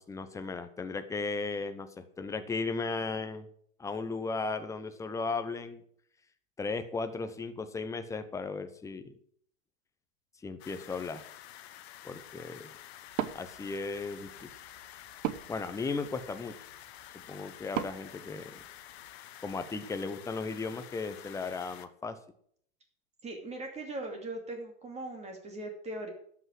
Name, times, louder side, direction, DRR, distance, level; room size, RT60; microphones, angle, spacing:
voice 1, 0.0-3.5 3.8-5.8 6.6-9.1 10.4-11.2 12.0-12.7 13.3-14.5 15.5-16.6 17.3-18.6 19.4-22.2, left 4 dB, 10° left, 9 dB, 0.9 m, -36 dB
sound 1, 10.6-21.9, left 12 dB, 50° left, 1.2 m, -50 dB
Wood, 13.1-19.1, right 13 dB, 35° right, 0.9 m, -41 dB
voice 2, 23.2-26.1, right 2 dB, 15° right, 2 dB, 2.6 m, -39 dB
12.0 x 6.0 x 7.6 m, 0.62 s
hypercardioid pair, 125°, 39 cm